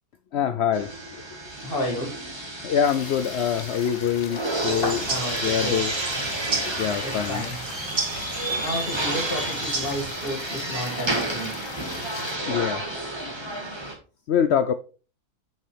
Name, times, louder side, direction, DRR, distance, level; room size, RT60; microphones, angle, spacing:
voice 1, 0.3-1.2 2.6-5.0 5.4-5.9 6.6-7.4 12.4-12.8 14.3-14.7, left 8 dB, 90° left, 0.5 m, -25 dB
sound 1, 0.7-13.9, right 1 dB, 15° right, 1.6 m, -31 dB
voice 2, 1.6-2.2 4.8-5.8 7.0-7.6 8.6-11.6, left 1 dB, 35° left, 2.3 m, -31 dB
sound 2, 2.8-12.4, left 8 dB, 60° left, 1.1 m, -42 dB
sound 3, 4.6-10.1, right 5 dB, 65° right, 2.3 m, -33 dB
8.4 x 6.5 x 3.3 m
omnidirectional pair, 1.7 m